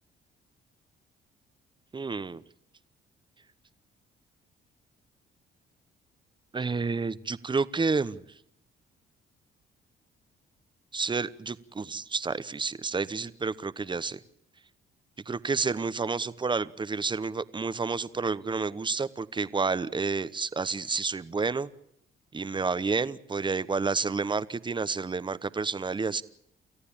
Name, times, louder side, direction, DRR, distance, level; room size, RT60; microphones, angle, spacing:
voice 1, 1.9-2.4 6.5-8.2 10.9-14.2 15.3-21.7 22.3-26.2, right 4 dB, 25° right, 15 dB, 1.0 m, -30 dB
29.0 x 14.5 x 8.8 m, 0.77 s
cardioid pair, 90°, 20 cm